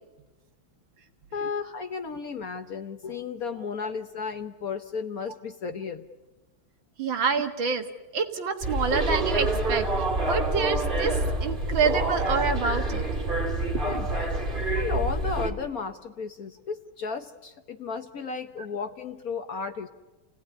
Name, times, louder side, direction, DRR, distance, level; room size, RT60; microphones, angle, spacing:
voice 1, 1.3-6.1 13.8-14.3 14.8-19.9, left 5 dB, 55° left, 8 dB, 1.2 m, -34 dB
voice 2, 7.0-7.8 8.1-9.9 10.3-11.1 11.4-13.0 13.9-14.0, right 5 dB, 65° right, 6 dB, 2.4 m, -27 dB
sound 1, 8.6-15.5, right 2 dB, 25° right, 2.4 m, -27 dB
29.5 x 18.0 x 9.9 m, 1.2 s
omnidirectional pair, 2.3 m